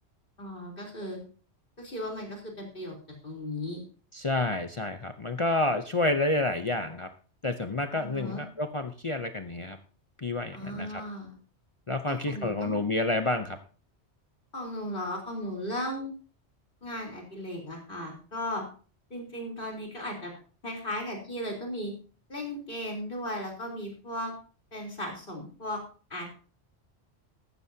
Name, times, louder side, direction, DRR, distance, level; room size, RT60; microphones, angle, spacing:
voice 1, 0.4-1.2 1.8-3.0 3.2-3.8 7.9-8.4 10.5-11.4 12.0-12.8 14.5-16.1 16.8-18.6 19.1-20.3 20.6-21.9 22.3-24.3 24.7-25.8 26.1-26.4, left 1 dB, 50° left, 0 dB, 4.1 m, -36 dB
voice 2, 4.1-7.1 7.4-9.8 10.2-11.0 11.9-13.6, left 2 dB, 30° left, 7 dB, 0.7 m, -29 dB
15.0 x 12.5 x 2.8 m, 0.39 s
omnidirectional pair, 1.2 m